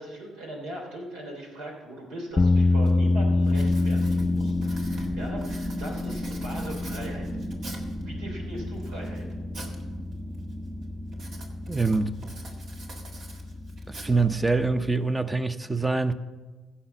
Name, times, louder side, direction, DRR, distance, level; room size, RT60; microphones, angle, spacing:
voice 1, 0.0-7.3 8.0-9.2, right 1 dB, 80° right, 3.1 m, -40 dB
Writing, 2.3-2.4 2.9-3.1 3.4-8.0 8.6-9.8 10.1-10.5 11.1-14.5, right 2 dB, 60° right, 1.9 m, -46 dB
sound 1, 2.4-14.9, left 2 dB, 30° left, 0.3 m, -28 dB
sound 2, 2.4-14.7, right 2 dB, 35° right, 1.2 m, -39 dB
voice 2, 11.7-12.1 13.9-16.1, right 3 dB, 20° right, 0.8 m, -25 dB
15.5 x 5.7 x 7.1 m
hypercardioid pair, 55°, 0 cm